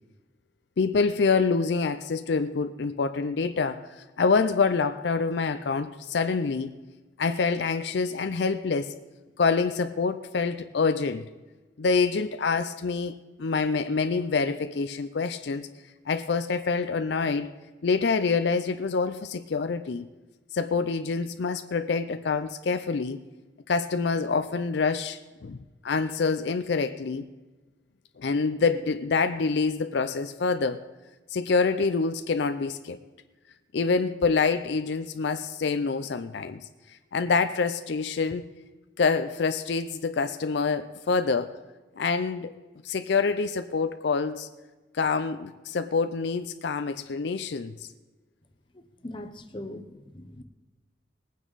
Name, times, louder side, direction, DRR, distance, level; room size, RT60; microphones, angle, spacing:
voice 1, 0.8-6.7 7.2-8.9 9.4-11.2 11.8-15.7 16.1-17.5 17.8-20.0 20.5-23.2 23.7-25.6 25.8-27.2 28.2-30.8 31.3-33.0 33.7-36.6 37.1-38.4 39.0-41.5 42.0-42.5 42.8-44.5 44.9-47.9, left 4 dB, 60° left, 10 dB, 0.5 m, -26 dB
voice 2, 48.7-50.4, left 1 dB, 25° left, 7 dB, 0.8 m, -41 dB
20.0 x 9.2 x 4.0 m, 1.2 s
head